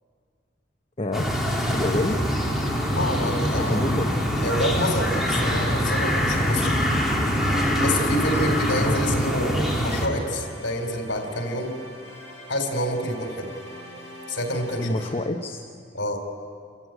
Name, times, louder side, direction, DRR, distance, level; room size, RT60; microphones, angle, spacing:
voice 1, 1.0-1.3 1.7-2.2 3.5-4.1 8.8-9.0 14.8-15.6, left 1 dB, 30° left, 3 dB, 1.0 m, -27 dB
sound 1, 1.1-10.1, equal, ahead, 2.8 m, -24 dB
sound 2, 1.6-15.1, equal, 15° left, 6.8 m, -43 dB
voice 2, 3.0-3.9 4.4-6.7 7.8-11.8 12.5-13.5 14.3-15.0 15.9-16.2, left 1 dB, 65° left, 3 dB, 3.8 m, -27 dB
28.5 x 14.5 x 9.2 m, 2.3 s
head